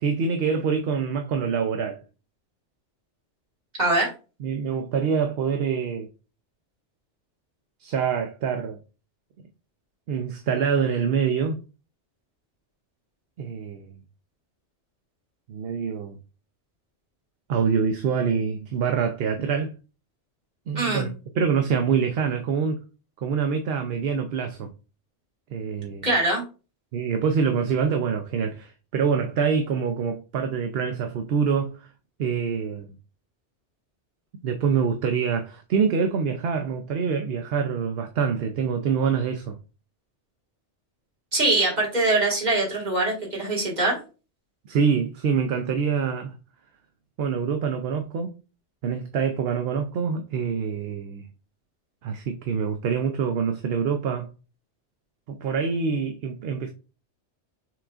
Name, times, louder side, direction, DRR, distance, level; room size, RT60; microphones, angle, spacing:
voice 1, 0.0-2.0 4.4-6.1 7.8-8.8 10.1-11.6 13.4-13.9 15.5-16.2 17.5-19.7 20.7-22.8 23.2-24.7 25.5-26.1 26.9-31.9 32.2-32.9 34.4-39.6 44.7-46.3 47.2-48.3 48.8-51.2 52.0-54.3 55.3-56.7, right 6 dB, 65° right, 0.8 m, -25 dB
voice 2, 3.8-4.1 20.8-21.1 26.0-26.4 41.3-44.0, right 2 dB, 40° right, 2.0 m, -23 dB
6.1 x 3.6 x 2.4 m
omnidirectional pair, 1.2 m